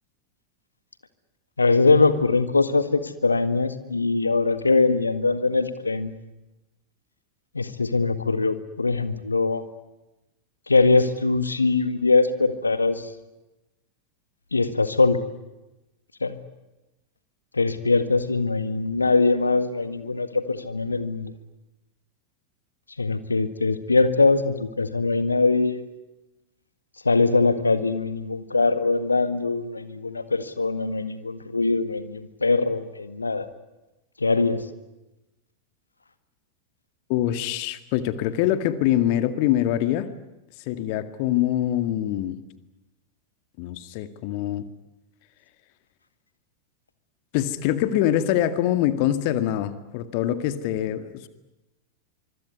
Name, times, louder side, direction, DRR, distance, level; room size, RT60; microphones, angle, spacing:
voice 1, 1.6-6.1 7.5-9.6 10.7-13.1 14.5-15.2 16.2-16.4 17.5-21.3 23.0-25.8 27.1-33.5 34.2-34.6, left 3 dB, 80° left, 12 dB, 1.8 m, -22 dB
voice 2, 37.1-40.1 40.7-42.4 43.6-44.6 47.3-51.3, left 12 dB, 45° left, 11 dB, 1.9 m, -24 dB
25.5 x 24.5 x 9.6 m, 1.0 s
figure-of-eight pair, 90°, 0 cm